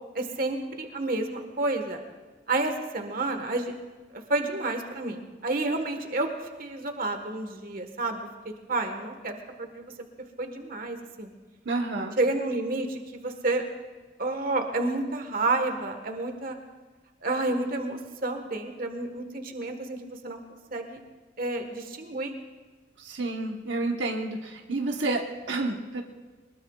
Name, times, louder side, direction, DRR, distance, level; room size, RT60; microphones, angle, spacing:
voice 1, 0.1-2.0 2.5-3.7 4.3-6.3 6.6-8.3 8.7-9.9 10.4-11.3 12.2-13.6 14.2-16.6 17.2-20.4 20.7-21.0 21.4-22.3, right 2 dB, 55° right, 5 dB, 1.5 m, -30 dB
voice 2, 11.6-12.2 23.0-26.0, right 2 dB, 80° right, 2 dB, 1.2 m, -30 dB
22.5 x 21.0 x 2.4 m, 1.3 s
head